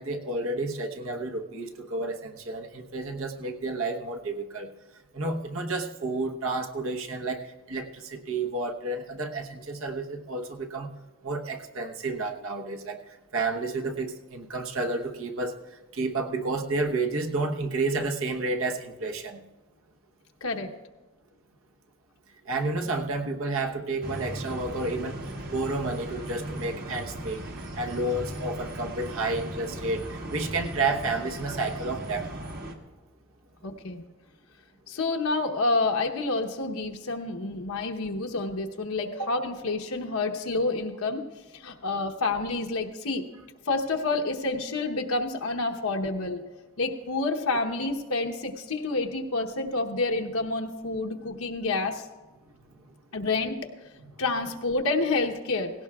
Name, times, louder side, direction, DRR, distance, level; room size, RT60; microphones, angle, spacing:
voice 1, 0.0-4.7 5.1-10.9 11.2-13.0 13.3-15.5 15.9-19.4 22.5-25.2 25.5-27.4 27.8-32.3 39.1-39.3, right 3 dB, 70° right, 3 dB, 1.0 m, -30 dB
sound 1, 24.0-32.8, right 1 dB, 45° right, 1.2 m, -37 dB
voice 2, 33.6-34.0 34.9-41.2 41.5-43.2 43.7-46.4 46.8-52.0 53.1-53.6 54.2-55.7, left 3 dB, 80° left, 2 dB, 1.0 m, -28 dB
17.5 x 17.0 x 2.4 m, 1.2 s
head